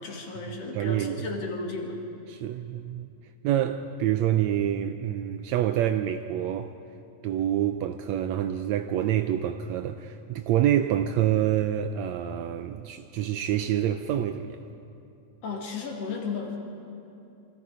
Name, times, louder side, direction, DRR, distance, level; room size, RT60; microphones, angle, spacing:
voice 1, 0.0-2.0 15.4-16.6, left 4 dB, 55° left, 1 dB, 3.2 m, -34 dB
voice 2, 0.7-1.3 2.3-3.1 3.4-6.7 7.2-14.6, right 11 dB, 75° right, 8 dB, 1.8 m, -27 dB
27.5 x 24.0 x 5.0 m, 2.7 s
omnidirectional pair, 3.4 m